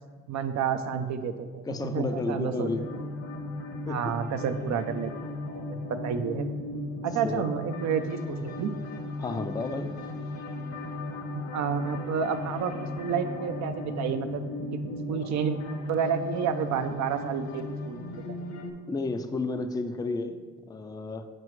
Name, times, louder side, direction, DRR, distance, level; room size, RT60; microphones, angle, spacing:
voice 1, 0.3-2.7 3.9-5.1 5.7-6.5 7.0-8.8 11.3-15.6 15.9-18.4, right 7 dB, 65° right, 8 dB, 0.5 m, -30 dB
voice 2, 1.7-2.9 3.2-3.4 3.9-4.3 7.2-7.5 9.2-10.0 18.9-21.3, left 3 dB, 15° left, 9 dB, 0.3 m, -32 dB
sound 1, 2.6-18.7, left 2 dB, 60° left, 0.9 m, -36 dB
7.6 x 4.8 x 3.1 m, 1.5 s
cardioid pair, 90°, 30 cm